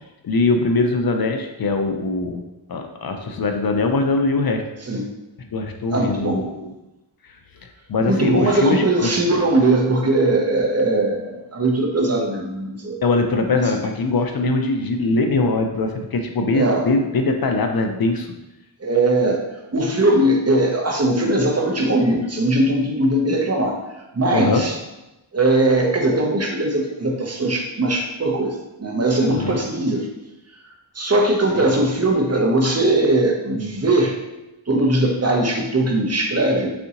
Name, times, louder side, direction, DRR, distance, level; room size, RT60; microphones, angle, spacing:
voice 1, 0.2-2.4 2.7-4.6 5.5-6.7 7.9-9.2 13.0-18.3 24.3-24.6 29.4-29.6, left 3 dB, 55° left, 4 dB, 0.5 m, -21 dB
voice 2, 4.8-5.1 5.9-6.5 8.0-13.0 13.4-13.8 16.5-16.9 18.8-19.4 19.7-23.8 24.1-24.8 25.3-30.1 30.9-34.2 34.7-36.7, right 2 dB, 35° right, 0 dB, 0.7 m, -20 dB
4.1 x 3.6 x 2.8 m, 0.99 s
wide cardioid pair, 80°, 45 cm